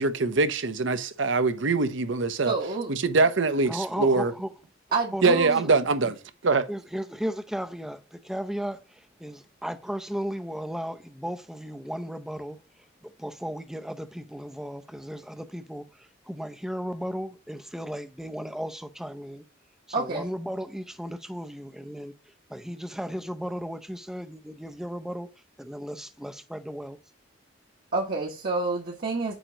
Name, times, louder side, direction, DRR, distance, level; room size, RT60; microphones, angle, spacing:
voice 1, 0.0-2.5 2.9-4.3 5.2-6.2 6.4-6.7, right 3 dB, 65° right, 0.7 m, -23 dB
voice 2, 2.4-2.9 4.9-5.6 19.9-20.3 27.9-29.3, right 3 dB, 50° right, 1.1 m, -28 dB
voice 3, 3.7-4.6 5.1-6.1 6.7-19.4 19.9-25.3 25.6-27.0, equal, ahead, 0.5 m, -35 dB
8.9 x 3.0 x 5.0 m
head